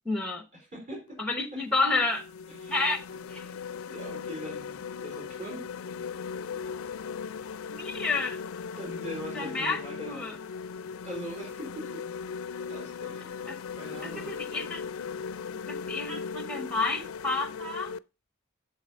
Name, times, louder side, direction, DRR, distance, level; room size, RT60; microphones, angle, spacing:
voice 1, 0.0-0.4 1.2-2.2 2.7-3.0 3.3-3.5 7.7-8.4 9.3-10.4 13.5-13.6 14.0-14.8 15.7-17.9, left 3 dB, 5° left, 0.8 m, -30 dB
voice 2, 0.7-1.2 2.6-2.7 3.9-5.7 8.8-10.3 11.0-12.0 12.7-14.3, right 1 dB, 35° right, 4.1 m, -41 dB
sound 1, 1.1-1.2 1.8-18.0, left 6 dB, 75° left, 0.4 m, -38 dB
8.1 x 6.6 x 5.2 m
head